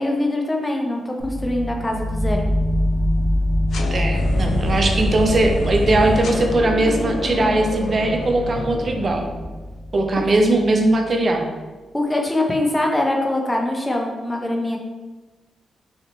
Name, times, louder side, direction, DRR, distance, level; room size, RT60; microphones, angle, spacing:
voice 1, 0.0-2.5 11.9-14.8, left 1 dB, 15° left, 1 dB, 0.6 m, -23 dB
sound 1, 1.2-11.0, left 1 dB, 10° right, 1.0 m, -25 dB
sound 2, 3.7-9.7, left 2 dB, 75° left, 0.4 m, -27 dB
voice 2, 3.9-9.3 9.9-11.5, right 2 dB, 45° right, 3 dB, 0.5 m, -19 dB
3.1 x 2.8 x 3.0 m, 1.2 s
cardioid pair, 70°, 0 cm